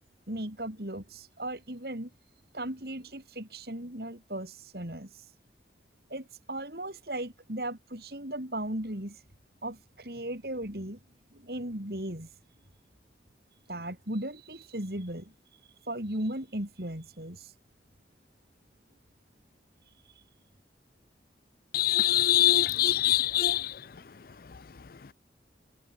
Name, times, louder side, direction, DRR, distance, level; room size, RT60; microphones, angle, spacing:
voice 1, 0.3-2.1 2.5-5.1 6.1-9.2 9.6-11.0 11.3-12.3 13.7-15.3 15.8-17.5, right 1 dB, 60° right, 4.8 m, -37 dB
voice 2, 21.8-23.6, left 14 dB, 55° left, 0.5 m, -23 dB
head